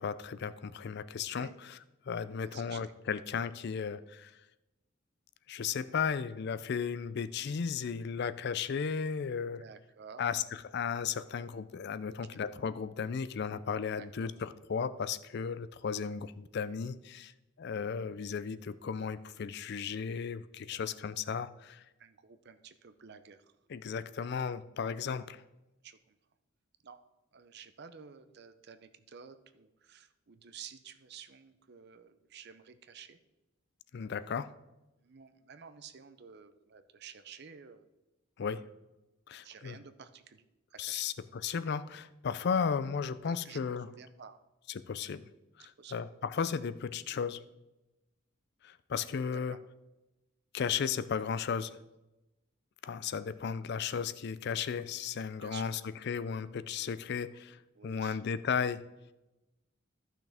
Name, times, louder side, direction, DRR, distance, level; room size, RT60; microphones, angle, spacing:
voice 1, 0.0-1.5 2.1-4.3 5.5-9.6 10.2-17.3 17.6-21.8 23.7-25.4 33.9-34.5 38.4-38.6 39.3-39.8 40.8-43.9 44.9-45.3 45.6-47.4 48.6-49.6 50.5-51.8 52.8-55.8 56.1-58.8, left 6 dB, 55° left, 14 dB, 0.4 m, -35 dB
voice 2, 2.2-2.9 9.6-10.2 12.1-12.2 14.0-14.3 20.6-20.9 22.0-23.5 24.2-24.3 25.8-26.2 26.8-27.0 27.3-33.2 34.0-34.3 35.0-37.9 39.4-41.1 43.3-44.4 45.6-45.9 49.3-49.6 55.4-55.7 57.7-58.2, right 7 dB, 55° right, 10 dB, 0.6 m, -52 dB
14.0 x 6.0 x 3.5 m, 0.99 s
head